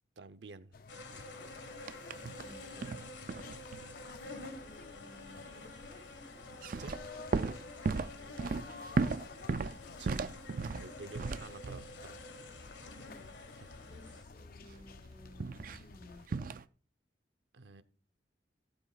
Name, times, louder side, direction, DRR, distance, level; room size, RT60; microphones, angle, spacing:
voice 1, 0.2-0.8 6.8-7.0 10.0-10.2 10.8-12.2 13.6-13.7 17.5-17.8, right 3 dB, 75° right, 11 dB, 0.8 m, -50 dB
sound 1, 0.7-16.3, left 4 dB, 55° left, 0.5 m, -53 dB
sound 2, 0.9-14.2, left 2 dB, 75° left, 1.7 m, -49 dB
sound 3, 1.9-2.5 2.8-4.0 6.5-12.0 15.4-15.8 16.3-16.6, right 4 dB, 50° right, 0.4 m, -35 dB
voice 2, 2.4-3.0 3.3-3.6 4.6-6.5 8.1-9.4 12.9-16.5, equal, 25° left, 1 dB, 5.3 m, -58 dB
16.5 x 12.0 x 2.4 m, 0.42 s
head